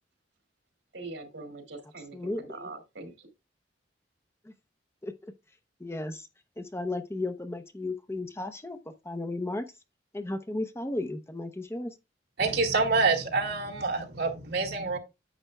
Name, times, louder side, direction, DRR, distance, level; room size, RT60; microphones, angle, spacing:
voice 1, 0.9-3.3, right 3 dB, 80° right, 2.3 m, -43 dB
voice 2, 2.1-2.7 4.5-4.6 5.0-5.3 5.8-6.3 6.6-8.8 9.0-9.6 10.1-11.9, left 2 dB, 15° left, 0.6 m, -34 dB
voice 3, 12.4-15.0, right 4 dB, 65° right, 2.1 m, -26 dB
9.9 x 7.7 x 2.2 m
head